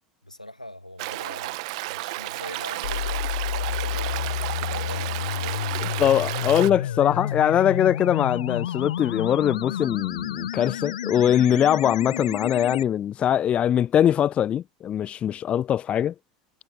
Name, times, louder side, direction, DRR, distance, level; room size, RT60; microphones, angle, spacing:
voice 1, 0.2-1.6 1.9-4.3 4.7-5.7, left 1 dB, 90° left, 2.1 m, -42 dB
Stream, 1.0-6.7, right 23 dB, 55° right, 1.5 m, -32 dB
sound 1, 2.8-12.8, left 10 dB, 70° left, 1.4 m, -30 dB
voice 2, 6.0-16.1, left 10 dB, 30° left, 0.6 m, -22 dB
figure-of-eight pair, 80°, 4 cm